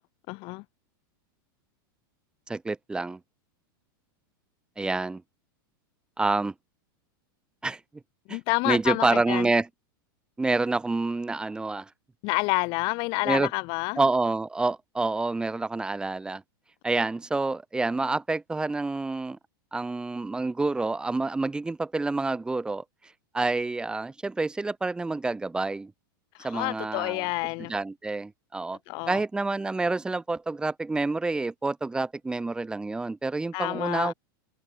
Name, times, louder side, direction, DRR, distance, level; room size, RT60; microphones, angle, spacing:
voice 1, 0.3-0.6 8.3-9.5 12.2-14.0 26.3-27.7 28.9-29.2 33.5-34.1, left 27 dB, 45° left, 6.3 m, -28 dB
voice 2, 2.5-3.2 4.8-5.2 6.2-6.5 7.6-7.8 8.3-8.4 8.6-9.7 10.4-11.9 13.2-13.5 14.0-16.4 16.8-19.4 19.7-22.8 23.3-25.9 26.4-27.3 27.6-28.8 29.1-34.1, right 3 dB, 5° right, 8.0 m, -28 dB
supercardioid pair, 155°, 12 cm